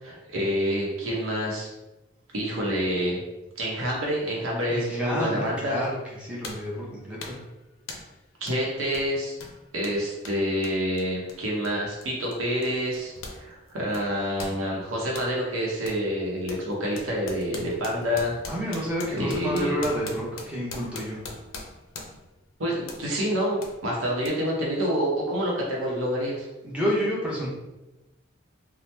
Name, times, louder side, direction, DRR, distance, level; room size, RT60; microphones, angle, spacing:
voice 1, 0.0-1.7 2.3-3.2 3.6-5.8 8.4-9.3 9.7-13.1 13.4-18.3 19.2-19.8 22.6-26.5, equal, 90° right, -3 dB, 0.7 m, -27 dB
voice 2, 4.7-5.9 6.2-7.4 18.5-21.2 26.6-27.5, equal, 5° right, -6 dB, 0.6 m, -29 dB
sound 1, 5.6-5.7 6.4-6.7 7.2-7.5 7.9-8.2 8.5-8.6 8.9-13.4 13.7-15.3 15.9-16.0 16.5-22.3 22.9-23.1 23.6-23.8 24.2-24.3, left 3 dB, 80° left, 0.4 m, -41 dB
2.8 x 2.0 x 3.1 m, 1.0 s
head